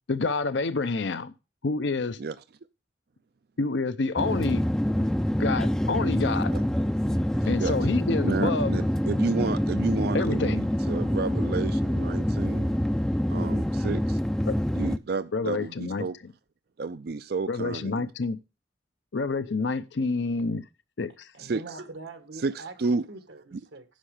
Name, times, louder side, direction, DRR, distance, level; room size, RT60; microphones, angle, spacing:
voice 1, 0.1-1.3 1.6-2.2 3.6-4.6 5.4-6.5 7.5-8.7 10.1-10.6 14.5-14.6 15.3-16.1 17.5-18.4 19.1-20.6 21.0-21.3, left 3 dB, 75° left, 0.6 m, -28 dB
sound 1, 4.2-15.0, equal, 5° left, 0.4 m, -26 dB
voice 2, 8.2-12.8 13.3-14.2 14.7-16.2 16.8-18.1 21.4-21.7 22.4-23.0 23.5-23.6, right 4 dB, 55° right, 0.4 m, -31 dB
voice 3, 21.3-22.7 23.1-23.8, right 3 dB, 85° right, 1.7 m, -43 dB
10.5 x 6.3 x 4.9 m
head